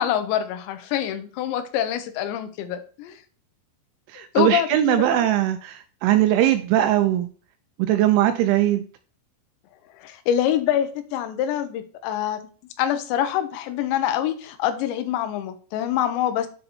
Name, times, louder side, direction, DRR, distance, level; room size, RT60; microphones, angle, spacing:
voice 1, 0.0-3.2 4.2-5.3 10.0-12.4 12.8-16.5, left 10 dB, 80° left, 9 dB, 2.6 m, -25 dB
voice 2, 4.1-7.3 7.8-8.8, right 12 dB, 85° right, 9 dB, 2.8 m, -20 dB
7.9 x 3.8 x 4.3 m, 0.41 s
omnidirectional pair, 5.7 m